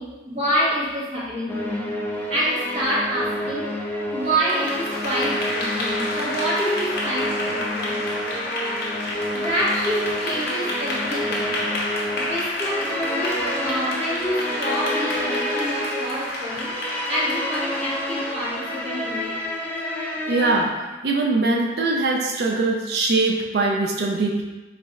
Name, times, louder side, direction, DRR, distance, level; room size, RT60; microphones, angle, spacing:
voice 1, 0.0-3.7 4.1-8.0 9.3-11.6 12.2-16.8 17.1-19.4, equal, 35° right, -9 dB, 1.2 m, -27 dB
sound 1, 1.5-20.7, equal, 10° left, 0.4 m, -29 dB
Clapping / Applause, 4.3-19.5, left 1 dB, 55° left, 0.7 m, -30 dB
voice 2, 20.3-20.7 21.0-24.4, right 3 dB, 55° right, 0 dB, 0.4 m, -22 dB
3.2 x 2.5 x 3.9 m, 1.2 s
head